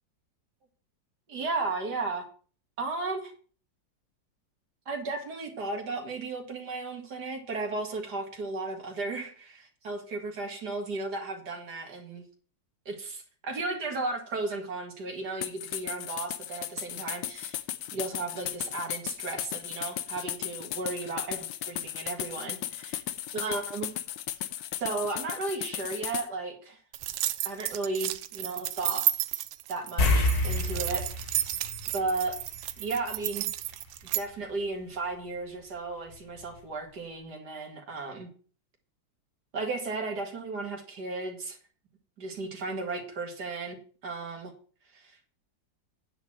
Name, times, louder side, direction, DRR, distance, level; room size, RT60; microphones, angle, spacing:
voice 1, 1.3-2.3 2.8-3.3 4.9-12.2 12.9-17.6 17.9-23.0 23.3-23.9 24.8-26.8 27.4-29.1 29.7-31.4 31.9-32.4 32.8-33.5 34.1-38.3 39.5-41.6 42.2-44.5 44.9-45.2, right 3 dB, 60° right, 2 dB, 2.5 m, -34 dB
sound 1, 15.4-26.3, left 12 dB, 85° left, 1.4 m, -36 dB
sound 2, 26.9-34.2, right 14 dB, 85° right, 1.3 m, -32 dB
sound 3, 30.0-32.8 33.1-33.3 36.1-36.2 36.6-36.7, left 2 dB, 55° left, 1.8 m, -28 dB
9.5 x 4.6 x 7.4 m, 0.42 s
omnidirectional pair, 2.0 m